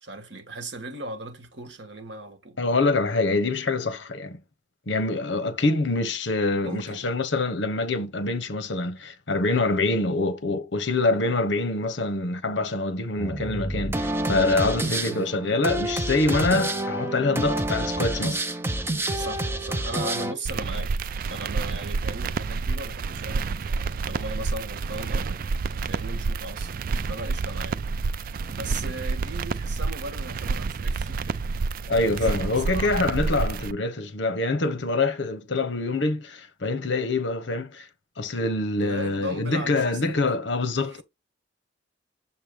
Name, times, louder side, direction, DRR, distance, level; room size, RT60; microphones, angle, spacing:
voice 1, 0.0-2.6 6.6-7.1 14.8-15.2 19.1-25.4 25.8-27.8 28.5-31.4 32.2-33.2 38.8-40.2 40.9-41.0, right 2 dB, 65° right, 1.5 m, -38 dB
voice 2, 2.6-4.4 4.9-18.4 31.9-37.9 38.2-41.0, left 2 dB, 70° left, 1.0 m, -25 dB
sound 1, 13.2-20.3, right 1 dB, 15° right, 0.6 m, -28 dB
sound 2, 20.5-33.7, right 4 dB, 50° right, 0.3 m, -29 dB
6.8 x 3.0 x 5.1 m
head